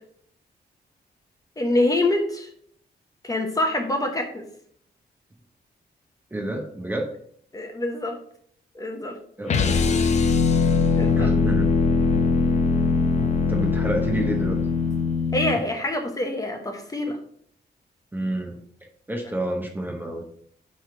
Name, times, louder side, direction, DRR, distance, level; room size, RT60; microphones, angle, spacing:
voice 1, 1.6-2.5 3.2-4.5 7.5-8.2 8.7-9.2 11.0-11.3 15.3-17.2, left 1 dB, 20° left, 3 dB, 0.8 m, -25 dB
voice 2, 6.3-7.1 9.4-10.1 11.1-11.7 13.5-14.6 18.1-18.6 19.1-20.2, right 1 dB, 10° right, 2 dB, 0.8 m, -29 dB
sound 1, 9.5-15.6, left 4 dB, 40° left, 0.6 m, -21 dB
8.7 x 3.2 x 4.5 m, 0.63 s
wide cardioid pair, 170°, 18 cm